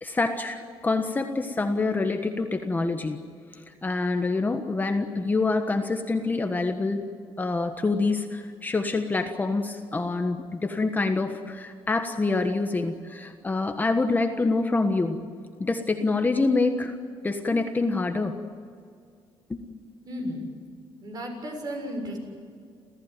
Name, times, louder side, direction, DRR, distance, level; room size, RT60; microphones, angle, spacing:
voice 1, 0.0-3.2 3.8-7.1 7.4-15.2 15.6-17.0 17.2-18.4 19.5-19.8, left 3 dB, 20° left, 6 dB, 1.4 m, -26 dB
voice 2, 20.0-20.5 21.0-22.2, equal, 45° right, 2 dB, 7.2 m, -34 dB
29.0 x 15.0 x 9.2 m, 2.2 s
cardioid pair, 120°, 9 cm